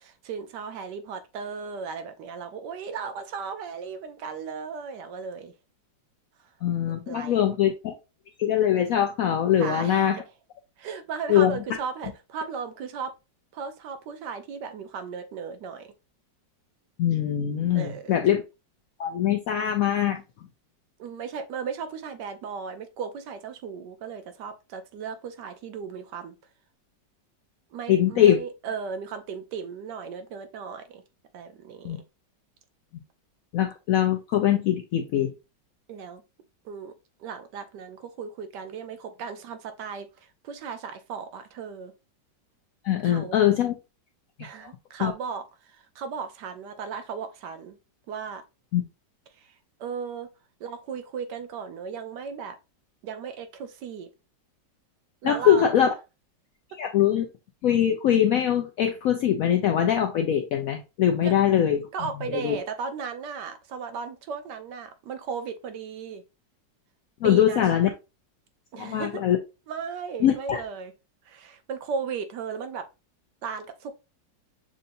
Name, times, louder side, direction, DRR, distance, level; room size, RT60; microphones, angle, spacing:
voice 1, 0.0-5.5 6.4-6.5 7.1-7.4 9.6-10.2 10.8-13.1 13.5-15.9 17.7-18.2 21.0-26.4 27.7-31.0 31.3-32.0 35.9-36.2 36.6-36.9 37.2-41.9 43.0-43.4 44.4-47.8 48.1-48.4 49.4-50.3 50.6-52.6 53.0-54.1 55.2-55.8 61.2-61.3 61.9-66.2 67.2-67.9 68.7-69.2 69.7-70.9 71.2-72.9 73.4-74.0, right 6 dB, 75° right, 1.2 m, -36 dB
voice 2, 6.6-7.9 8.4-10.2 11.3-11.6 17.0-18.4 19.0-20.2 27.9-28.4 31.8-32.0 33.5-35.3 42.8-43.7 44.4-44.5 45.0-45.1 48.7-48.8 55.2-55.9 56.8-57.3 57.6-61.9 62.3-62.6 67.2-67.9 68.8-69.4 70.2-70.6, left 10 dB, 80° left, 0.7 m, -22 dB
6.5 x 2.7 x 2.5 m
omnidirectional pair, 2.0 m